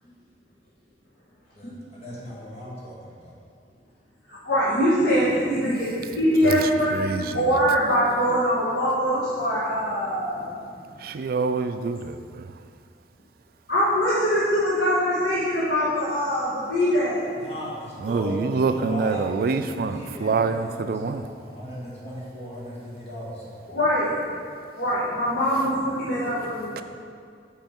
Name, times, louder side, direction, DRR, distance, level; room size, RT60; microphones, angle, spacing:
voice 1, 1.5-3.3 17.3-23.8, equal, 35° left, -7 dB, 1.9 m, -37 dB
voice 2, 4.3-10.6 13.7-17.3 23.7-24.4 24.8-26.8, equal, 70° left, -9 dB, 1.4 m, -23 dB
voice 3, 6.4-7.7 11.0-12.6 18.0-21.3 26.8-26.9, right 4 dB, 55° right, 9 dB, 0.3 m, -26 dB
7.2 x 5.6 x 4.4 m, 2.2 s
head